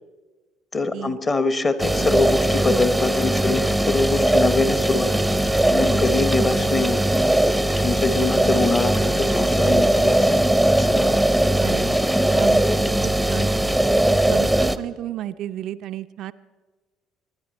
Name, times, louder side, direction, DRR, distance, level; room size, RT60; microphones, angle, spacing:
voice 1, 0.7-7.1 7.8-10.4 10.7-11.5, left 3 dB, 30° left, 12 dB, 1.0 m, -24 dB
sound 1, 1.8-14.8, right 1 dB, ahead, 0.6 m, -20 dB
voice 2, 2.0-2.3 11.6-12.0 12.3-12.6 13.0-13.5 14.1-16.3, right 12 dB, 55° right, 11 dB, 0.3 m, -33 dB
23.5 x 10.0 x 4.2 m, 1.3 s
figure-of-eight pair, 55°, 0 cm